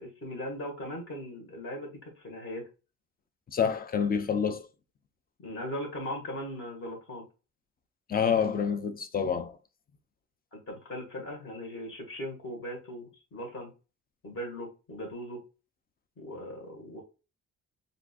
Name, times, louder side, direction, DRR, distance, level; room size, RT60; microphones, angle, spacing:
voice 1, 0.0-2.7 5.4-7.3 10.5-13.7 14.2-15.4 16.2-17.0, equal, 45° left, 1.7 m, -39 dB
voice 2, 3.5-4.7 8.1-9.6, left 7 dB, 30° left, 0.5 m, -27 dB
3.7 x 2.7 x 2.4 m
cardioid pair, 90°, 30 cm